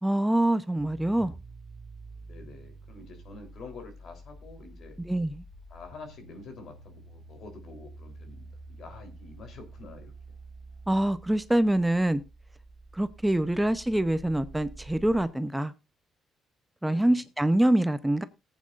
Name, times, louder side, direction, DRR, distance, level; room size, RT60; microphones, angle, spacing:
voice 1, 0.0-1.3 5.1-5.4 10.9-12.2 12.9-15.7 16.8-18.2, right 1 dB, 5° right, 12 dB, 0.7 m, -25 dB
sound 1, 0.8-15.2, right 2 dB, 40° right, 1.9 m, -48 dB
voice 2, 2.3-5.0 5.7-10.1 13.4-13.5 16.8-17.2, left 3 dB, 65° left, 6 dB, 3.5 m, -47 dB
18.5 x 8.6 x 2.5 m, 0.25 s
cardioid pair, 90°, 0 cm